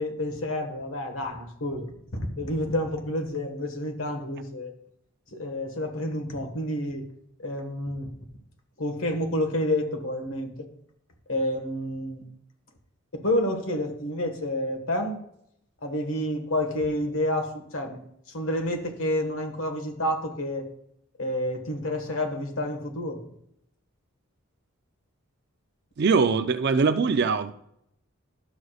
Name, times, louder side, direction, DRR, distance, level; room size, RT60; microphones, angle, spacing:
voice 1, 0.0-4.7 5.3-7.1 7.4-8.1 8.8-10.7 11.3-12.2 13.1-15.2 15.8-18.0 18.3-20.7 21.2-23.2, left 1 dB, 70° left, 4 dB, 1.4 m, -29 dB
voice 2, 26.0-27.5, right 5 dB, 50° right, 11 dB, 0.4 m, -22 dB
12.0 x 6.4 x 2.4 m, 0.73 s
head